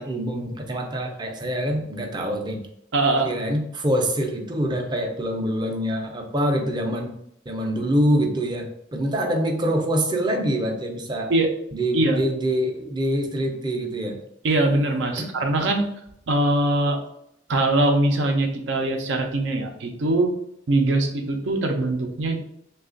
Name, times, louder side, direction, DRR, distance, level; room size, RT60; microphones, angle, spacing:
voice 1, 0.0-2.6 3.2-7.1 7.5-11.3 11.7-14.2 15.2-15.3, equal, 25° right, 2 dB, 0.5 m, -25 dB
voice 2, 2.9-3.3 11.3-11.5 11.9-12.2 14.4-15.9 16.3-17.0 17.5-20.3 20.7-22.4, right 2 dB, 75° right, 3 dB, 0.6 m, -22 dB
3.2 x 2.3 x 3.7 m, 0.75 s
head